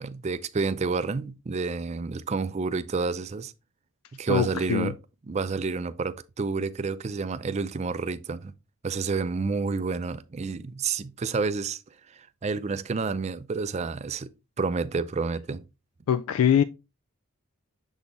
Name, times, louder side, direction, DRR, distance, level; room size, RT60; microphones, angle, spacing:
voice 1, 0.0-3.5 4.1-5.0 5.3-8.5 8.8-11.8 12.1-14.3 14.6-15.6, right 4 dB, 30° right, 0.4 m, -29 dB
voice 2, 4.3-4.9 16.1-16.6, left 8 dB, 80° left, 0.3 m, -22 dB
7.0 x 4.2 x 3.2 m
head